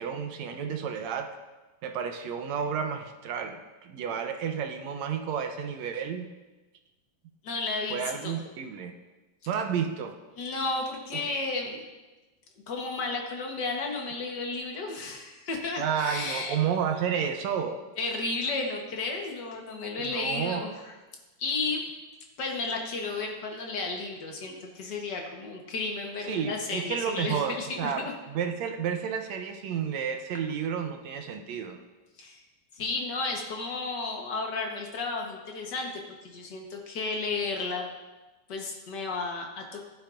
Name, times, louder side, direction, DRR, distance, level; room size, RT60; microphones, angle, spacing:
voice 1, 0.0-1.4 1.8-6.3 7.9-8.9 9.5-10.2 11.1-11.2 15.8-17.8 20.0-20.7 26.2-31.8, right 7 dB, 75° right, 6 dB, 1.7 m, -31 dB
voice 2, 7.4-8.4 10.4-11.9 12.7-16.5 18.0-20.9 21.4-21.9 22.4-28.1 32.2-32.4 32.7-35.9 36.2-37.9 38.5-39.8, left 3 dB, 65° left, 1 dB, 1.0 m, -33 dB
15.5 x 10.5 x 2.5 m, 1.1 s
omnidirectional pair, 3.6 m